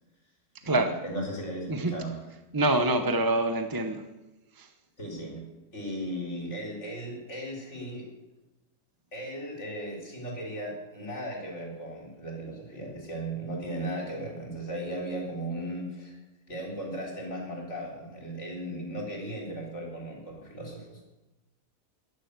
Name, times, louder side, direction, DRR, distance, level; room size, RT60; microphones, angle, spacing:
voice 1, 0.6-2.2 5.0-5.4 5.7-8.1 9.1-16.2 16.5-21.0, right 1 dB, 50° left, 0 dB, 4.1 m, -36 dB
voice 2, 2.5-4.0 4.6-4.7, right 2 dB, 20° right, 7 dB, 0.7 m, -25 dB
14.0 x 11.0 x 8.1 m, 1.0 s
omnidirectional pair, 1.5 m